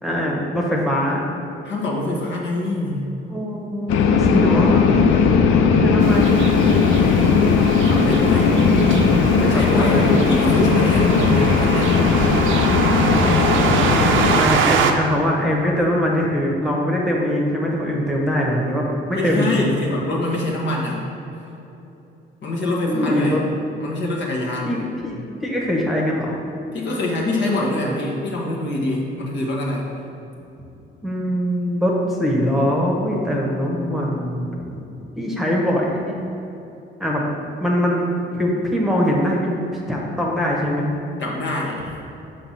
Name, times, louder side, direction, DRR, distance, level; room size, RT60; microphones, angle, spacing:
voice 1, 0.0-1.2 3.3-5.0 5.7-6.5 8.4-10.2 14.3-19.8 22.9-23.4 24.6-26.4 31.0-31.9 32.2-34.9 35.2-36.0 37.0-37.2 37.6-38.1 38.3-39.5 39.9-40.9, equal, ahead, -3 dB, 1.1 m, -22 dB
voice 2, 1.6-3.1 6.9-7.4 7.8-8.6 9.4-11.9 19.1-21.0 22.4-23.4 23.8-24.8 26.7-29.9 41.2-41.9, left 2 dB, 65° left, -3 dB, 1.3 m, -25 dB
sound 1, 3.9-14.4, left 5 dB, 80° left, 0.5 m, -17 dB
sound 2, 6.0-14.9, right 6 dB, 80° right, 0.5 m, -24 dB
5.8 x 3.5 x 5.6 m, 2.9 s
cardioid pair, 90°, 20 cm